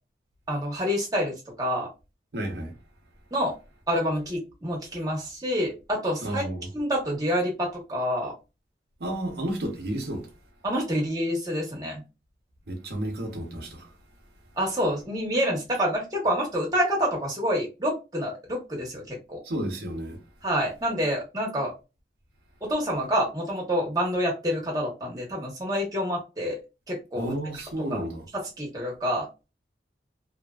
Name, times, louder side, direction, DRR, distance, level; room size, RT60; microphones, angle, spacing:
voice 1, 0.5-1.9 3.3-3.5 3.9-6.4 6.7-8.3 10.6-12.0 14.6-19.4 20.4-21.7 22.6-26.6 26.9-27.3 27.8-28.0 28.3-29.3, equal, 20° right, 1.0 m, -27 dB
voice 2, 2.3-2.7 6.2-6.7 9.0-10.3 12.7-13.9 19.4-20.2 27.1-28.3, right 1 dB, 65° right, 0.7 m, -32 dB
2.8 x 2.5 x 2.3 m
head